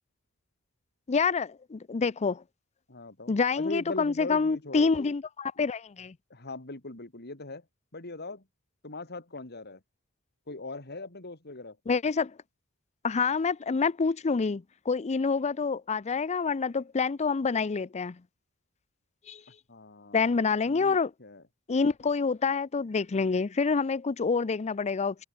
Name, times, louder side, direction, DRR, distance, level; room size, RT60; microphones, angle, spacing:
voice 1, 1.1-2.4 3.3-6.1 11.9-12.3 13.0-18.2 19.3-19.4 20.1-21.1 21.7-25.2, left 4 dB, 30° left, 0.5 m, -27 dB
voice 2, 2.9-4.9 5.6-5.7 6.3-7.7 7.9-8.4 8.8-9.8 10.5-11.8 19.7-20.3 20.7-21.4, left 2 dB, 50° left, 3.5 m, -40 dB
head